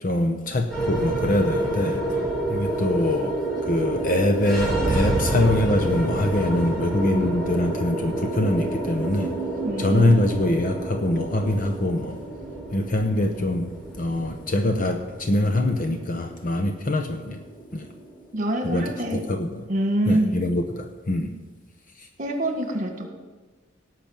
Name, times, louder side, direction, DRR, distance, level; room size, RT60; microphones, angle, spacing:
voice 1, 0.0-2.2 2.5-3.4 3.6-9.3 9.8-12.2 12.7-13.7 14.0-17.4 17.7-17.9 18.6-19.7 20.1-21.3 22.0-22.1, left 1 dB, 40° left, 6 dB, 0.8 m, -24 dB
sound 1, 0.7-19.1, right 2 dB, 5° left, 4.7 m, -28 dB
voice 2, 9.6-10.2 18.3-20.5 22.2-23.1, right 1 dB, 40° right, 4 dB, 1.8 m, -26 dB
17.5 x 6.0 x 8.8 m, 1.3 s
head